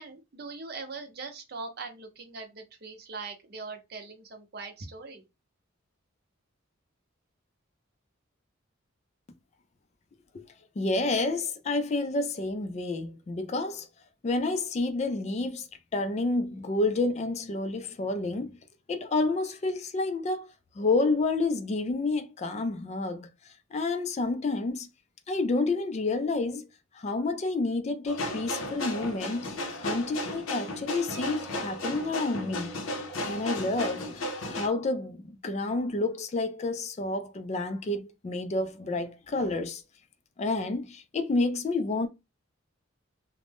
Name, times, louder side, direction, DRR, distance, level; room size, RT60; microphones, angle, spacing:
voice 1, 0.0-5.2, right 4 dB, 50° right, 0.6 m, -41 dB
voice 2, 10.8-13.9 14.2-15.7 15.9-18.6 18.9-20.5 20.8-23.3 23.7-24.9 25.3-26.7 27.0-29.5 29.8-32.7 33.2-39.8 40.4-42.1, left 3 dB, 35° left, 0.3 m, -29 dB
sound 1, 28.1-34.7, left 1 dB, 85° left, 0.7 m, -34 dB
2.5 x 2.1 x 3.4 m
head